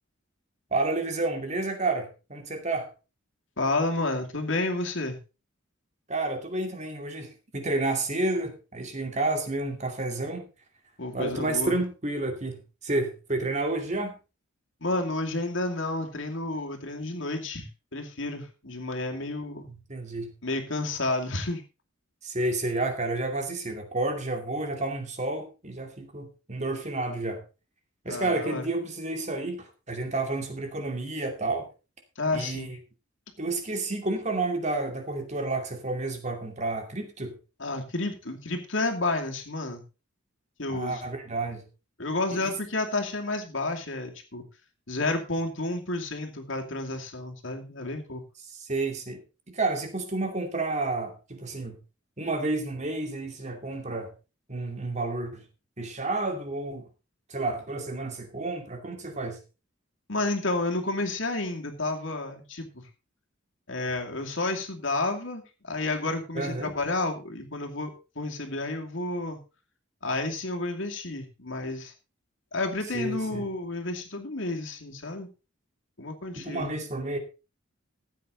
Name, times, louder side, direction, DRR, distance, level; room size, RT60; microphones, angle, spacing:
voice 1, 0.7-2.9 6.1-10.5 11.1-14.1 19.9-20.3 22.2-27.4 28.0-31.7 32.3-32.8 33.4-37.4 40.7-41.7 42.3-42.4 48.5-49.2 49.5-51.8 52.2-54.1 54.5-55.4 55.8-56.8 57.3-59.4 66.3-66.7 72.9-73.5 76.4-77.2, right 2 dB, 35° right, 5 dB, 2.5 m, -30 dB
voice 2, 3.6-5.2 11.0-11.7 14.8-17.7 17.9-19.7 20.4-21.6 28.1-28.7 32.2-32.8 37.6-39.8 40.6-41.0 42.0-44.4 44.9-48.2 60.1-62.8 63.7-69.4 70.0-71.9 72.5-75.3 76.0-76.7, left 2 dB, 65° left, 3 dB, 2.6 m, -31 dB
14.5 x 9.0 x 3.9 m, 0.30 s
head